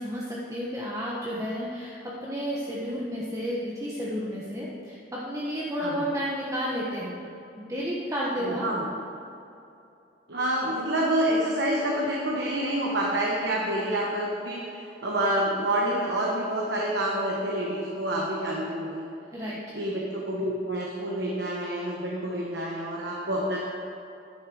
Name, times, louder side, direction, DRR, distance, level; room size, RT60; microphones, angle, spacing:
voice 1, 0.0-7.2 7.6-8.7 19.3-19.8, equal, 20° right, -6 dB, 1.1 m, -32 dB
voice 2, 8.4-8.9 10.3-19.0 19.7-23.6, right 1 dB, 65° right, -3 dB, 1.2 m, -28 dB
10.0 x 6.7 x 6.3 m, 2.7 s
head